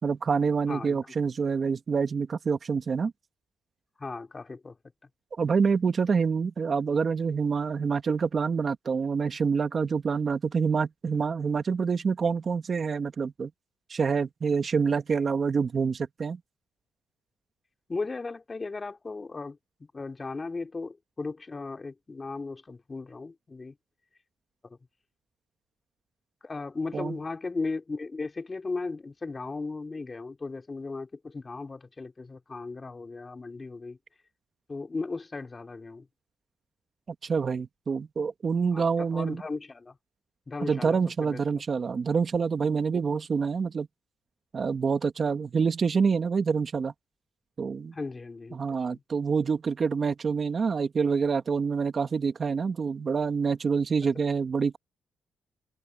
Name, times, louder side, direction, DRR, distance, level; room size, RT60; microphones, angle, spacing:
voice 1, 0.0-3.1 5.4-13.5 13.9-16.4 26.9-27.2 37.2-39.4 40.6-43.9 44.5-46.9 47.6-47.9 48.5-54.8, right 5 dB, 40° right, 2.4 m, -27 dB
voice 2, 0.7-1.0 4.0-4.8 17.9-23.8 24.6-24.8 26.4-34.0 34.7-36.1 38.7-40.0 40.5-41.6 47.9-48.6 48.9-49.0, left 3 dB, 25° left, 3.7 m, -36 dB
cardioid pair, 90°, 0 cm